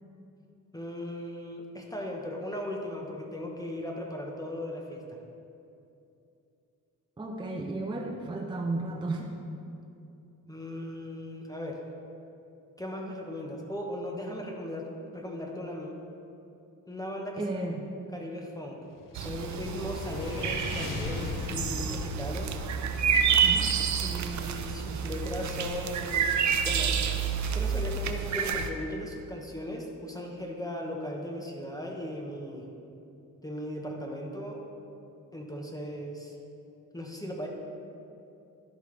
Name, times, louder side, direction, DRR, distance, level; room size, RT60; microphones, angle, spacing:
voice 1, 0.7-5.2 10.5-11.8 12.8-16.0 16.9-17.4 18.1-18.8 19.1-22.5 24.0-27.0 27.5-32.7 33.4-34.7 35.3-36.4 36.9-37.5, left 1 dB, 10° left, 0 dB, 0.9 m, -37 dB
voice 2, 7.2-9.3 17.4-17.9 23.4-23.8, right 2 dB, 15° right, 0 dB, 0.5 m, -33 dB
sound 1, 19.0-24.5, left 4 dB, 70° left, 0.7 m, -39 dB
sound 2, 19.2-28.7, right 7 dB, 55° right, 0.6 m, -29 dB
11.5 x 5.5 x 3.2 m, 2.7 s
cardioid pair, 105°, 33 cm